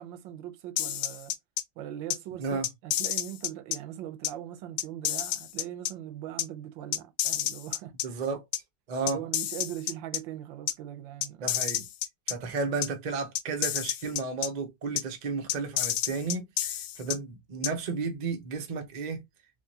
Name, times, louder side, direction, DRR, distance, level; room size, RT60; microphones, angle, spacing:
voice 1, 0.0-1.3 1.8-8.2 9.0-11.5, right 11 dB, 85° right, 1.4 m, -40 dB
sound 1, 0.8-1.6 2.1-2.2 2.6-3.8 4.2-4.3 4.8-5.9 6.4-6.5 6.9-8.0 8.5-8.6 9.1-10.2 10.7-10.8 11.2-12.3 12.8-12.9 13.3-14.5 15.0-15.1 15.5-17.2 17.6-17.7, left 12 dB, 85° left, 1.3 m, -29 dB
voice 2, 8.0-8.4 8.9-9.2 11.4-11.9 12.3-19.2, right 4 dB, 60° right, 0.4 m, -33 dB
3.6 x 2.8 x 2.7 m
omnidirectional pair, 2.0 m